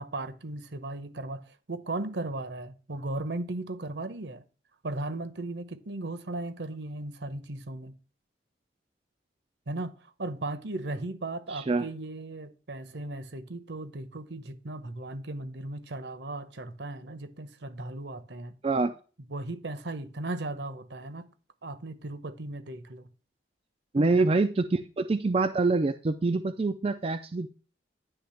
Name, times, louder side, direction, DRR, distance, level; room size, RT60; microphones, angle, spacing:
voice 1, 0.0-4.4 4.8-8.0 9.7-9.9 10.2-18.6 19.3-21.3 21.6-23.1 24.0-24.3, right 2 dB, 70° right, 0.9 m, -36 dB
voice 2, 11.5-11.9 18.6-18.9 23.9-27.5, right 3 dB, 30° right, 0.4 m, -26 dB
10.0 x 3.4 x 5.6 m
head